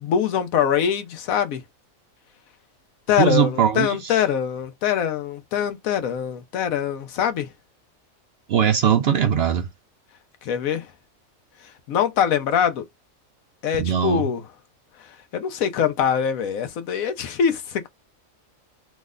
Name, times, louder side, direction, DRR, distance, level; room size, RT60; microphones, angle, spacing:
voice 1, 0.0-1.6 3.1-7.5 10.4-10.9 11.9-12.9 13.6-14.4 15.3-17.9, left 8 dB, 80° left, 1.1 m, -23 dB
voice 2, 3.2-4.2 8.5-9.7 13.8-14.3, right 8 dB, 60° right, 0.7 m, -20 dB
3.1 x 2.1 x 3.6 m
omnidirectional pair, 1.4 m